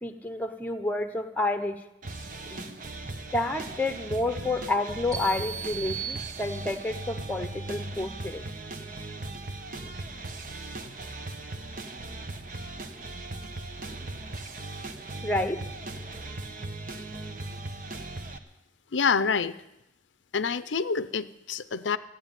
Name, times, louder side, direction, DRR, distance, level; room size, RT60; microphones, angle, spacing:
voice 1, 0.0-1.8 2.5-2.7 3.3-8.4 15.2-15.6, left 2 dB, 10° left, 7 dB, 1.0 m, -29 dB
sound 1, 2.0-18.4, right 2 dB, 45° right, 1.1 m, -38 dB
sound 2, 5.1-7.0, right 7 dB, 20° right, 2.1 m, -37 dB
voice 2, 18.9-19.5 20.3-22.0, left 5 dB, 80° left, 13 dB, 0.6 m, -27 dB
14.5 x 10.5 x 9.1 m, 0.89 s
head